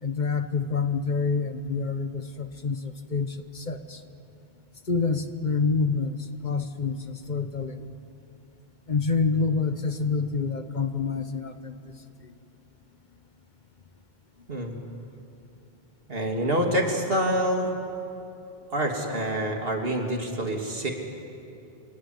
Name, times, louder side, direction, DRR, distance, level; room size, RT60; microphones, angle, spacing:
voice 1, 0.0-4.0 4.9-7.9 8.9-11.7 12.2-12.3, left 4 dB, 50° left, 10 dB, 1.1 m, -27 dB
voice 2, 16.1-17.8 18.7-20.9, right 1 dB, 65° right, 2 dB, 3.1 m, -26 dB
27.0 x 21.5 x 9.7 m, 2.8 s
omnidirectional pair, 1.0 m